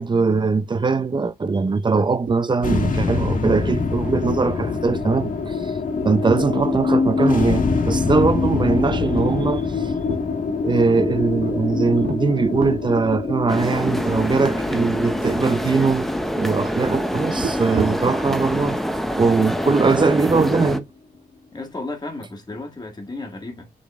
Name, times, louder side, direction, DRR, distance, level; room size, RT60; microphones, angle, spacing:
voice 1, 0.0-5.7 6.0-9.9 10.6-16.1 16.4-18.8 19.2-20.9, right 4 dB, 30° right, 0.6 m, -21 dB
sound 1, 2.3-2.8 3.0-3.1 3.5-3.8 4.2-4.3 4.7-6.9 7.2-7.9 8.4-10.3 11.0-11.6 12.0-12.2 12.6-12.9 13.5-13.6 13.9-14.3 14.6-14.7 15.3-15.9 17.3-18.1, right 5 dB, 70° right, 2.3 m, -33 dB
sound 2, 2.6-19.0, left 4 dB, 55° left, 1.7 m, -25 dB
sound 3, 13.5-20.8, equal, ahead, 0.8 m, -25 dB
voice 2, 21.5-23.7, left 2 dB, 25° left, 1.8 m, -33 dB
7.4 x 3.9 x 3.6 m
wide cardioid pair, 120°, 16 cm